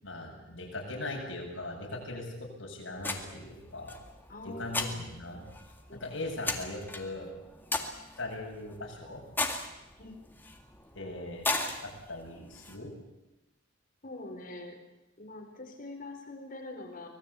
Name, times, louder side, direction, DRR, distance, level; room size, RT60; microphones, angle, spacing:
voice 1, 0.0-4.0 4.4-5.4 6.0-7.3 8.2-9.2 10.9-11.5 11.8-12.9, left 2 dB, 70° left, -1 dB, 7.8 m, -39 dB
sound 1, 3.0-12.8, left 2 dB, 10° left, 2.1 m, -38 dB
voice 2, 4.3-5.1 5.9-6.1 10.0-10.2 14.0-14.8 15.2-17.1, left 2 dB, 45° left, 3 dB, 4.5 m, -44 dB
25.0 x 19.0 x 8.5 m, 0.99 s
head